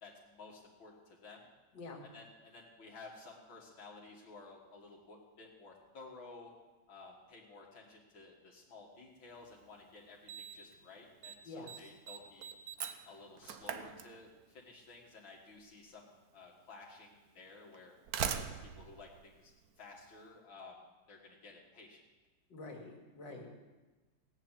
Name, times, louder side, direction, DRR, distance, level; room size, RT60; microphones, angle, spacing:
voice 1, 0.0-1.5 2.0-6.5 6.9-12.5 13.1-17.9 18.3-20.8 21.1-22.0, left 3 dB, 90° left, -3 dB, 2.8 m, -54 dB
Slam, 9.5-9.6 10.3-10.7 11.0-11.4 11.7-14.6 15.7-15.8 16.7-16.8 17.7-20.1, right 8 dB, 60° right, 1.2 m, -41 dB
voice 2, 11.4-11.9 22.5-23.7, left 2 dB, 70° left, 0 dB, 3.0 m, -48 dB
17.0 x 9.5 x 7.4 m, 1.2 s
omnidirectional pair, 2.1 m